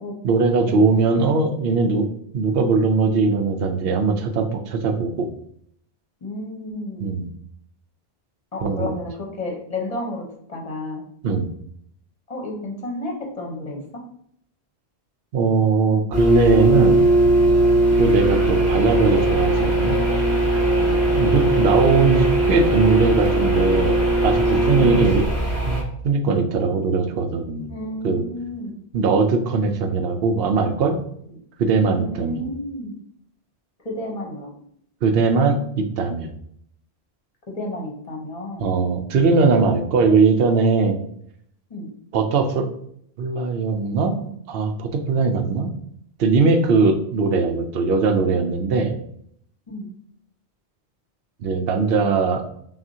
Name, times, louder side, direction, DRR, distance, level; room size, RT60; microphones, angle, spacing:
voice 1, 0.2-2.1 2.3-5.3 7.0-7.3 8.6-8.9 11.2-11.5 15.3-17.0 18.0-20.0 21.1-24.0 24.2-25.2 25.6-27.7 28.0-28.2 28.9-31.0 31.6-32.4 35.0-36.3 38.6-41.0 42.1-42.7 43.2-45.7 46.2-48.9 51.4-52.4, right 4 dB, 70° right, 6 dB, 0.8 m, -20 dB
voice 2, 6.2-7.1 8.5-11.0 12.3-13.8 20.8-21.0 27.7-28.8 32.0-32.9 33.8-34.5 37.5-38.8 41.7-41.9 49.7-49.9, left 1 dB, 35° left, 0 dB, 1.0 m, -32 dB
sound 1, 16.1-25.8, right 1 dB, 15° right, 1.0 m, -19 dB
5.9 x 2.4 x 2.7 m, 0.68 s
omnidirectional pair, 1.1 m